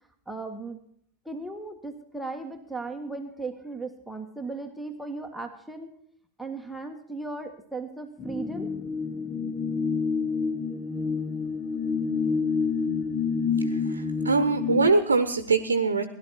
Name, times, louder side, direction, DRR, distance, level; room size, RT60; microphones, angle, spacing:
voice 1, 0.3-0.8 1.2-5.9 6.4-8.7, right 3 dB, ahead, 3 dB, 1.6 m, -37 dB
sound 1, 8.2-14.9, left 5 dB, 20° left, 1.2 m, -28 dB
voice 2, 13.6-16.1, right 4 dB, 75° right, 10 dB, 1.1 m, -23 dB
18.0 x 12.0 x 4.3 m, 0.63 s
figure-of-eight pair, 90°, 0 cm